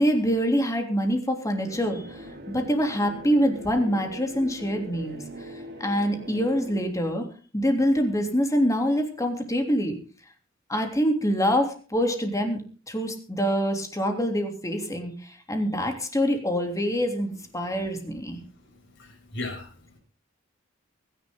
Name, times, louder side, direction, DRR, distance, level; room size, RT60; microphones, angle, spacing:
voice 1, 0.0-7.2 7.5-10.0 10.7-12.6 12.9-18.4, equal, 15° left, 3 dB, 3.2 m, -25 dB
sound 1, 1.6-6.8, right 1 dB, 55° right, 3.2 m, -41 dB
voice 2, 19.0-20.0, left 2 dB, 65° left, 1 dB, 7.7 m, -37 dB
23.0 x 10.5 x 3.9 m, 0.39 s
head